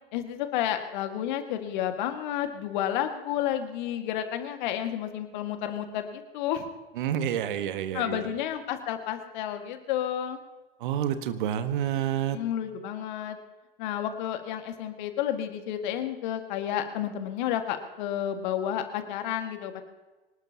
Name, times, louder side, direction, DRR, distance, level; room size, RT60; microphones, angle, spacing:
voice 1, 0.1-6.7 7.9-10.4 12.3-13.4 13.8-19.8, left 10 dB, 50° left, 7 dB, 1.9 m, -31 dB
voice 2, 7.0-8.2 10.8-12.4, right 10 dB, 55° right, 10 dB, 1.4 m, -28 dB
24.5 x 19.5 x 2.9 m, 1.2 s
figure-of-eight pair, 90°, 30 cm